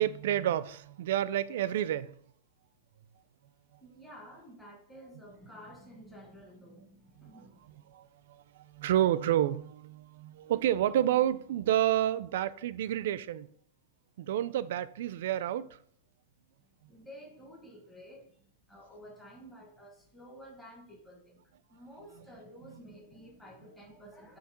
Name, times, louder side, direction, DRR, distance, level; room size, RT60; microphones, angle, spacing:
voice 1, 0.0-2.2 7.2-7.3 7.9-13.5 14.2-15.7, right 12 dB, 60° right, 0.3 m, -29 dB
voice 2, 3.8-7.9 16.9-21.4 21.7-24.4, equal, 5° left, 0.9 m, -52 dB
6.5 x 2.8 x 5.7 m
supercardioid pair, 160°, 0 cm